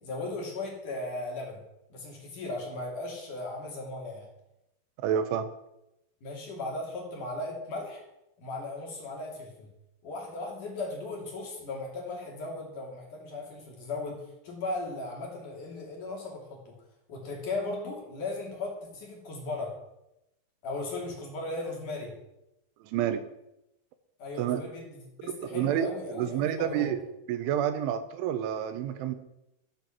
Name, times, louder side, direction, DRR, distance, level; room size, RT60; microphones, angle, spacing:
voice 1, 0.0-1.6 1.9-4.3 6.2-8.0 8.4-9.7 10.0-16.8 17.1-19.8 20.6-22.2 24.2-26.9, left 2 dB, 45° left, -1 dB, 3.8 m, -37 dB
voice 2, 5.0-5.5 22.9-23.2 24.4-24.6 25.3-25.9 26.2-27.0 27.3-29.2, right 10 dB, 85° right, 10 dB, 3.2 m, -29 dB
14.5 x 8.2 x 7.4 m, 0.87 s
omnidirectional pair, 5.7 m